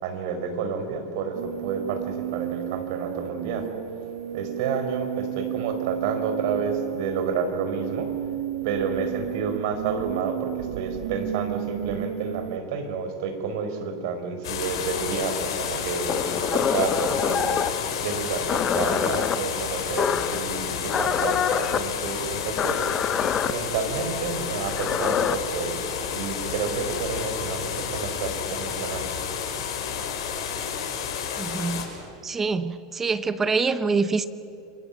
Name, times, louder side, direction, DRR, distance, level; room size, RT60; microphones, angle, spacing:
voice 1, 0.0-3.7 4.3-8.1 8.6-22.9 23.4-25.9 26.1-29.1, right 5 dB, 50° right, 4.7 m, -30 dB
sound 1, 1.3-12.6, right 12 dB, 75° right, 1.5 m, -33 dB
sound 2, 14.4-31.8, left 7 dB, 90° left, 6.0 m, -30 dB
sound 3, 16.1-17.8 18.5-19.4 20.0-20.4 20.9-21.8 22.6-23.5 24.6-25.4, left 8 dB, 20° left, 0.8 m, -25 dB
voice 2, 31.4-31.9 32.2-34.3, right 4 dB, 10° right, 0.8 m, -25 dB
29.5 x 24.0 x 7.2 m
supercardioid pair, 170°, 2 cm